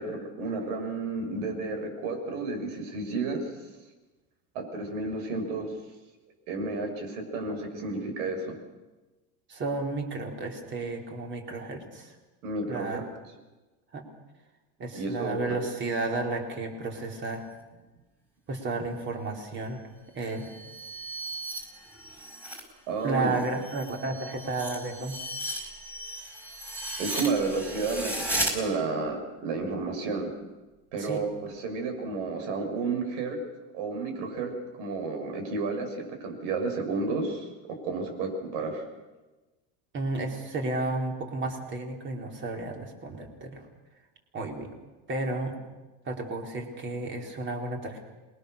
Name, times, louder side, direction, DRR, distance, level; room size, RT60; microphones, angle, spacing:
voice 1, 0.0-3.4 4.6-5.7 6.5-8.6 12.4-13.1 14.9-15.6 22.9-23.3 27.0-30.3 30.9-33.4 33.7-34.5 34.8-38.8, right 3 dB, 75° right, 4 dB, 7.0 m, -31 dB
voice 2, 9.5-12.2 12.7-13.1 13.9-14.1 14.8-17.5 18.5-19.8 20.1-20.5 23.0-25.2 31.0-31.2 39.9-43.6 44.3-44.7 45.1-45.5 46.0-48.0, right 2 dB, 30° right, 2 dB, 4.2 m, -32 dB
sound 1, 20.3-22.7 23.0-28.5, equal, 5° right, 4.6 m, -36 dB
27.0 x 21.5 x 6.8 m, 1.1 s
supercardioid pair, 150°, 37 cm